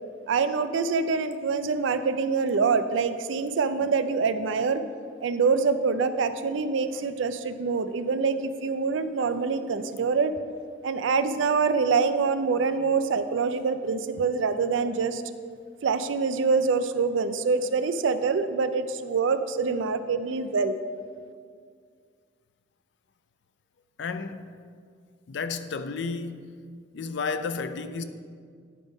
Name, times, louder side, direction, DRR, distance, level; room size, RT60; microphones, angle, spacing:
voice 1, 0.3-4.8 5.2-10.3 10.8-15.2 15.8-20.8, right 5 dB, 75° right, 0.4 m, -25 dB
voice 2, 24.0-24.5 25.3-26.5 26.9-28.0, left 4 dB, 65° left, 0.4 m, -32 dB
9.8 x 3.5 x 5.1 m
head